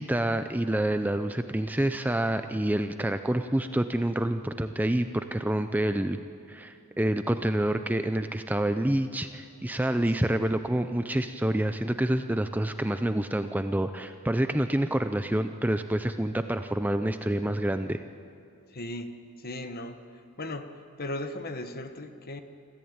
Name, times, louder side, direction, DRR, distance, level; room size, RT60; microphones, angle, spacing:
voice 1, 0.0-6.2 6.5-18.0, right 1 dB, 5° right, 8 dB, 0.5 m, -27 dB
voice 2, 9.9-10.4 18.7-20.1 20.4-22.4, left 1 dB, 45° left, 8 dB, 1.2 m, -38 dB
26.5 x 14.5 x 8.8 m, 2.4 s
head